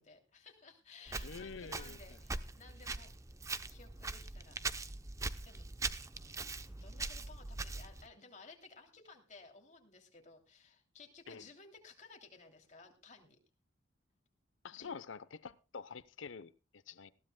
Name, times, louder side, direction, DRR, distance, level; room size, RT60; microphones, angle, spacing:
voice 1, 0.0-3.1 3.7-4.6 5.4-5.7 6.1-6.5 6.8-13.4 14.7-14.9, left 4 dB, 40° left, 2.7 m, -57 dB
Walk footsteps, 1.1-8.1, right 3 dB, 15° right, 0.6 m, -42 dB
voice 2, 1.2-2.2 11.3-11.4 14.6-17.1, left 5 dB, 85° left, 0.8 m, -47 dB
20.0 x 15.5 x 2.2 m
head